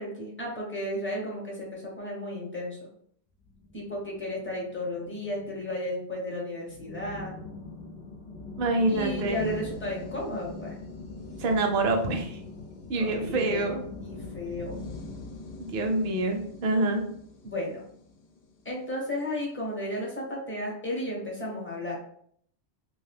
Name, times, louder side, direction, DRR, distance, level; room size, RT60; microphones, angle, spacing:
voice 1, 0.0-2.8 3.7-7.4 8.9-10.8 12.9-13.7 14.0-14.8 17.4-17.8 18.6-22.0, left 1 dB, 15° left, -3 dB, 0.7 m, -34 dB
sound 1, 3.5-18.9, left 2 dB, 70° left, 0.8 m, -42 dB
voice 2, 8.6-9.4 11.4-12.4 12.9-13.8 15.6-17.0, right 2 dB, 60° right, 3 dB, 0.7 m, -26 dB
2.6 x 2.3 x 3.3 m, 0.64 s
omnidirectional pair, 1.2 m